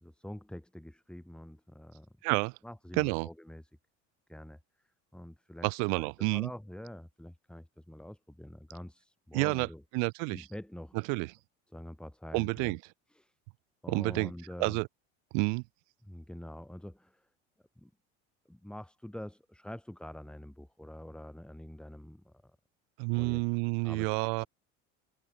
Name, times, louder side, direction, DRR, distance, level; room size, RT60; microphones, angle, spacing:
voice 1, 0.0-2.1 2.6-3.6 4.3-4.6 5.1-5.7 5.9-9.8 10.3-11.0 11.7-12.7 13.1-13.3 13.8-14.8 16.1-17.3 17.8-17.9 18.5-22.5 23.2-23.4 23.8-24.5, left 1 dB, 5° left, 2.3 m, -46 dB
voice 2, 2.2-2.6 3.0-3.3 5.6-6.5 9.3-9.7 9.9-10.5 11.1-11.3 12.3-12.8 13.9-14.3 14.6-14.9 15.3-15.6 23.0-24.5, right 40 dB or more, 65° right, 0.6 m, -29 dB
supercardioid pair, 90°, 35 cm